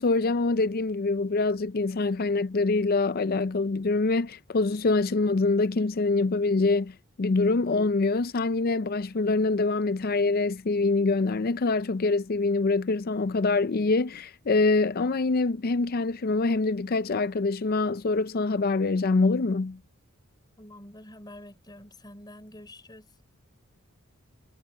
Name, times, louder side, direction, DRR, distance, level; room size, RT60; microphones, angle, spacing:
voice 1, 0.0-19.8, left 3 dB, 45° left, 0.5 m, -25 dB
voice 2, 20.6-23.1, left 1 dB, 20° left, 4.8 m, -47 dB
head